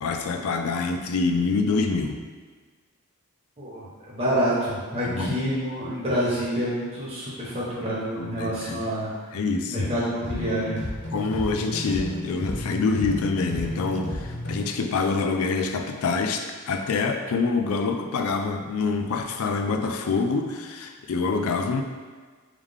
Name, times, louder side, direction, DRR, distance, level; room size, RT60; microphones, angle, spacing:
voice 1, 0.0-2.2 5.0-5.4 8.2-8.9 9.3-9.9 10.4-10.5 11.1-21.8, left 4 dB, 75° left, 5 dB, 0.4 m, -26 dB
voice 2, 3.6-9.1 9.7-10.8, equal, 25° right, -8 dB, 1.1 m, -27 dB
sound 1, 10.2-14.8, left 1 dB, 50° left, 1.2 m, -32 dB
3.7 x 3.2 x 3.5 m, 1.5 s
head